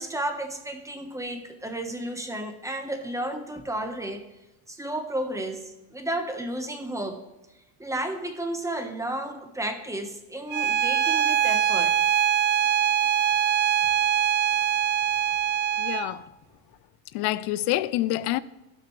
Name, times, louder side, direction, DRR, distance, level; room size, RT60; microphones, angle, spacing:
voice 1, 0.0-4.2 4.7-7.2 7.8-12.0, right 1 dB, 5° right, 1.2 m, -32 dB
Bowed string instrument, 10.5-16.1, right 9 dB, 25° right, 0.3 m, -23 dB
voice 2, 15.8-16.2 17.1-18.4, left 15 dB, 50° left, 0.6 m, -27 dB
17.0 x 6.2 x 3.3 m
supercardioid pair, 115°, 49 cm